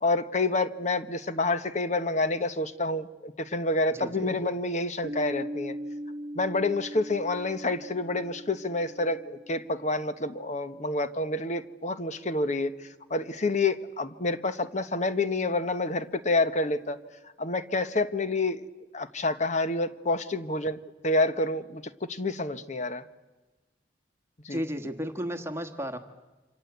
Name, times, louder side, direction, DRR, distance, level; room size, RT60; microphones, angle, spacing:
voice 1, 0.0-5.7 6.3-17.0 17.4-18.6 18.9-23.0 24.4-24.6, left 2 dB, 40° left, 11 dB, 1.2 m, -28 dB
voice 2, 3.9-4.2 24.5-26.0, equal, 15° right, 6 dB, 1.4 m, -33 dB
Piano, 5.0-10.4, equal, 60° right, 1.1 m, -40 dB
27.5 x 26.5 x 8.1 m, 1.2 s
head